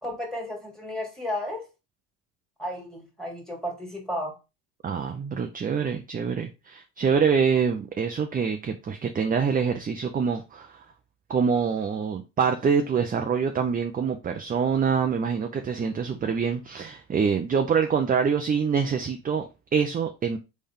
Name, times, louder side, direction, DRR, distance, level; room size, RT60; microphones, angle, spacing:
voice 1, 0.0-1.6 2.6-4.4, left 1 dB, ahead, 2.2 m, -33 dB
voice 2, 4.8-10.8 11.3-20.4, right 6 dB, 20° right, 0.6 m, -25 dB
4.2 x 3.6 x 3.5 m
supercardioid pair, 90°, 39 cm